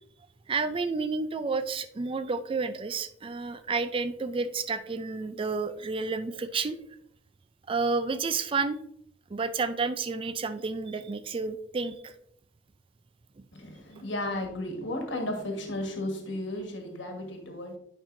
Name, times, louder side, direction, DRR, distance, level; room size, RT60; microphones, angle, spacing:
voice 1, 0.5-6.8 7.7-8.8 9.3-12.1, right 4 dB, 30° right, 11 dB, 0.4 m, -30 dB
voice 2, 13.5-17.8, left 1 dB, 80° left, 3 dB, 1.4 m, -34 dB
10.0 x 5.3 x 2.6 m, 0.73 s
head